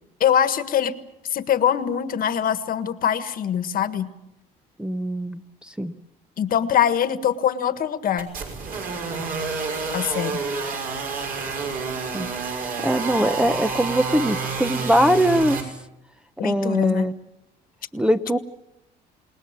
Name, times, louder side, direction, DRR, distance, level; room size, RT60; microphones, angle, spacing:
voice 1, 0.2-0.9 1.3-4.1 6.4-8.3 9.9-10.4 16.4-17.1, left 9 dB, 55° left, 11 dB, 1.7 m, -23 dB
voice 2, 4.8-5.9 12.1-12.3 12.8-15.6 16.4-17.1 17.9-18.4, equal, 5° right, 10 dB, 0.9 m, -22 dB
sound 1, 8.2-15.6, right 4 dB, 60° right, 6.1 m, -29 dB
28.5 x 19.5 x 7.5 m, 0.88 s
cardioid pair, 110°, 17 cm